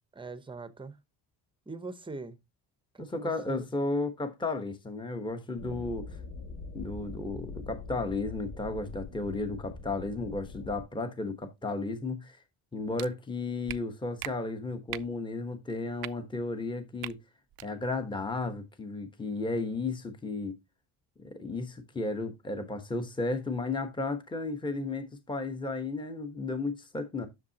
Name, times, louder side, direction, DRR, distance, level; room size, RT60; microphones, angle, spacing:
voice 1, 0.1-1.0 1.7-2.4 2.9-3.7, right 3 dB, 10° right, 0.8 m, -42 dB
voice 2, 3.0-6.2 6.7-12.4 12.7-17.2 17.6-20.5 21.2-27.3, left 3 dB, 10° left, 1.1 m, -34 dB
sound 1, 5.5-10.8, left 3 dB, 80° left, 4.6 m, -43 dB
sound 2, 13.0-13.1 13.7-13.8 14.2-14.3 14.9-15.1 16.0-16.1 17.0-17.1 17.5-17.7, right 15 dB, 55° right, 0.5 m, -38 dB
10.5 x 6.6 x 2.8 m
cardioid pair, 145°, 43 cm